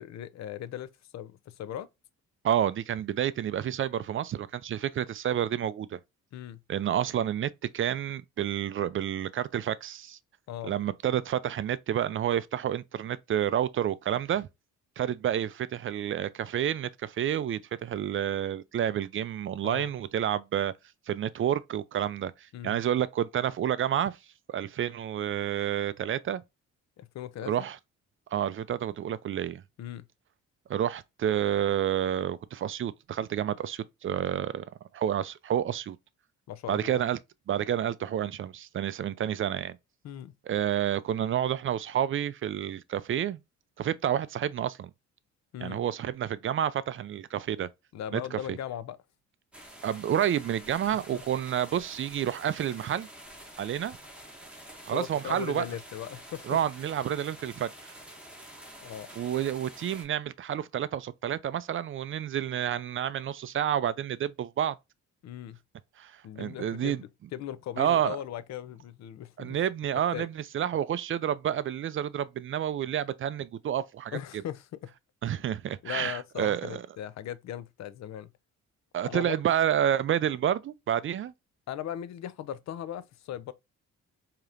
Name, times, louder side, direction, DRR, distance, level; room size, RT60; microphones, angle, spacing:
voice 1, 0.0-1.9 6.3-6.6 10.5-10.7 19.6-19.9 22.5-22.8 27.0-27.7 29.8-30.0 36.5-37.0 40.0-40.3 45.5-45.8 47.9-49.0 51.1-51.2 54.9-56.6 58.8-59.1 65.2-65.6 66.2-69.6 70.1-70.3 74.1-74.9 75.8-78.3 79.0-79.4 81.7-83.5, left 11 dB, 65° left, 0.6 m, -38 dB
voice 2, 2.4-6.0 6.7-10.2 10.6-14.5 15.0-20.7 21.1-24.2 24.5-26.4 27.5-27.8 28.3-29.6 30.7-34.6 34.9-36.0 36.7-37.2 37.5-39.8 40.5-43.4 43.8-44.9 45.6-47.7 48.1-48.6 49.8-53.1 53.6-54.0 54.8-55.6 56.5-57.9 59.2-64.7 66.0-67.0 67.8-68.2 69.4-74.2 75.2-76.8 78.9-81.3, right 10 dB, 45° right, 0.4 m, -29 dB
sound 1, 49.5-60.0, right 1 dB, 5° right, 1.6 m, -48 dB
4.8 x 2.9 x 2.4 m
cardioid pair, 90°, 30 cm